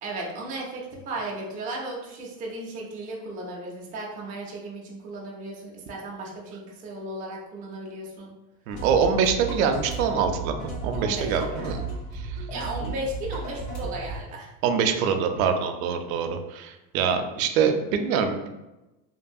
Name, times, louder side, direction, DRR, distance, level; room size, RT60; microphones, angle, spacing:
voice 1, 0.0-8.3 10.9-11.7 12.5-14.5, right 1 dB, 20° right, -3 dB, 0.4 m, -35 dB
sound 1, 8.7-14.2, right 3 dB, 75° left, 1.4 m, -34 dB
voice 2, 8.7-11.8 12.1-12.5 12.8-12.9 14.6-18.5, right 6 dB, 85° right, 6 dB, 0.5 m, -25 dB
2.8 x 2.3 x 2.6 m, 1.0 s
supercardioid pair, 155°, 41 cm